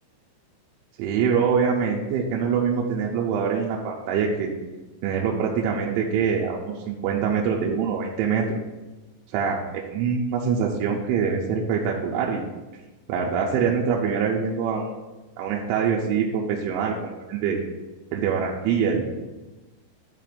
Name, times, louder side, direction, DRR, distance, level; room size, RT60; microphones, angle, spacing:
voice 1, 1.0-4.5 5.0-8.5 9.3-12.4 13.1-14.9 15.4-17.6 18.1-19.1, right 6 dB, 85° right, -2 dB, 2.9 m, -24 dB
12.5 x 4.9 x 2.5 m, 1.2 s
omnidirectional pair, 5.5 m